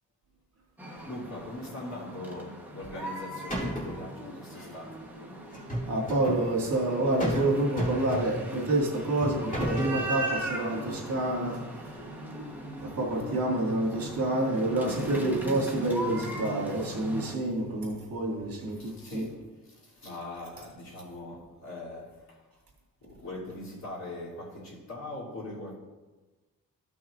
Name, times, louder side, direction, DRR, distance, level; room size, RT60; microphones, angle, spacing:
sound 1, 0.8-17.4, right 1 dB, 5° right, 1.1 m, -39 dB
voice 1, 1.0-5.1 12.6-12.9 18.7-22.4 23.0-25.7, left 1 dB, 50° left, -7 dB, 3.0 m, -41 dB
sound 2, 2.8-3.2 3.5-4.0 5.5-6.4 7.2-7.5 7.8-8.5 9.2-10.0, equal, 25° left, 2.5 m, -32 dB
voice 2, 5.8-12.0 12.8-19.2, right 2 dB, 75° right, -5 dB, 2.3 m, -28 dB
14.0 x 6.1 x 2.5 m, 1.2 s
wide cardioid pair, 135°, 35 cm